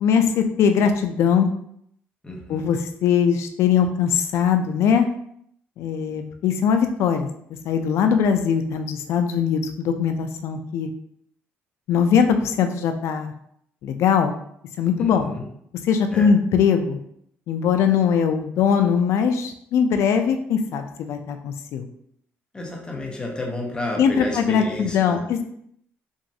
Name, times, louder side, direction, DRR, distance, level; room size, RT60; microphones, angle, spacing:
voice 1, 0.0-1.5 2.5-5.1 5.8-7.3 7.6-10.9 11.9-13.3 13.8-14.4 14.8-15.3 15.8-17.0 17.5-21.9 24.0-25.4, left 7 dB, 70° left, 7 dB, 0.3 m, -21 dB
voice 2, 2.2-2.7 15.0-15.5 16.1-16.3 22.5-25.2, left 1 dB, 15° left, -1 dB, 0.7 m, -31 dB
3.0 x 2.4 x 2.7 m, 0.70 s
cardioid pair, 115°, 5 cm